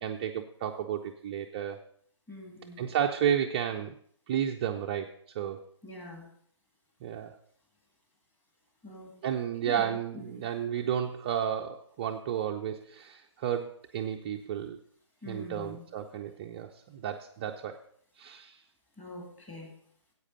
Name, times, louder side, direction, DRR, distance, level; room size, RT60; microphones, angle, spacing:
voice 1, 0.0-1.8 2.8-4.0 4.3-5.6 7.0-7.4 9.2-14.8 15.3-17.8 18.2-18.6, right 9 dB, 20° right, 3 dB, 0.4 m, -32 dB
voice 2, 2.3-2.9 5.8-6.3 8.8-9.1 9.6-10.4 15.2-15.8 19.0-19.7, left 1 dB, 10° left, 1 dB, 2.1 m, -44 dB
9.8 x 8.2 x 5.3 m, 0.64 s
figure-of-eight pair, 140°, 15 cm